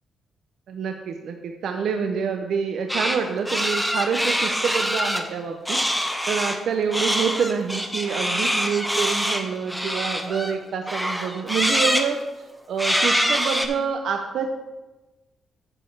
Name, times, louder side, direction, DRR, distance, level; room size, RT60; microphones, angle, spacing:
voice 1, 0.7-14.5, right 6 dB, 70° right, 5 dB, 0.6 m, -27 dB
sound 1, 2.9-3.2 3.5-5.2 5.7-6.6 6.9-10.5 10.9-12.1 12.8-13.7, equal, ahead, 0.8 m, -24 dB
8.8 x 6.5 x 4.6 m, 1.2 s
cardioid pair, 105°, 0 cm